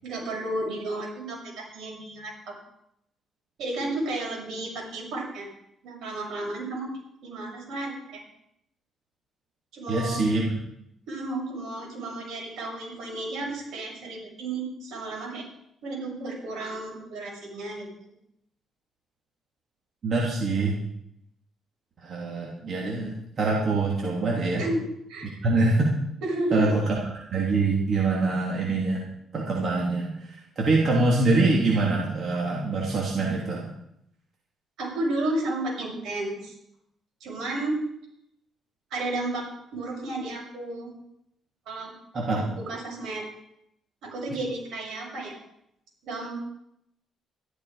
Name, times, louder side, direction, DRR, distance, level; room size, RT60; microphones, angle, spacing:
voice 1, 0.0-2.5 3.6-5.5 5.8-6.9 7.2-8.2 9.7-10.2 11.1-15.5 15.8-17.9 24.6-24.8 25.1-25.4 26.2-26.7 34.8-36.5 37.2-37.8 38.9-39.5 39.7-40.9 41.7-41.9 42.7-43.2 44.0-45.4 46.0-46.4, right 2 dB, 80° right, -2 dB, 6.8 m, -32 dB
voice 2, 9.9-10.5 20.0-20.8 22.0-23.1 23.4-24.6 25.4-25.9 26.5-29.0 29.3-33.7 42.1-42.5, right 3 dB, 50° right, -2 dB, 3.2 m, -24 dB
14.0 x 12.5 x 5.2 m, 0.77 s
cardioid pair, 90°, 0 cm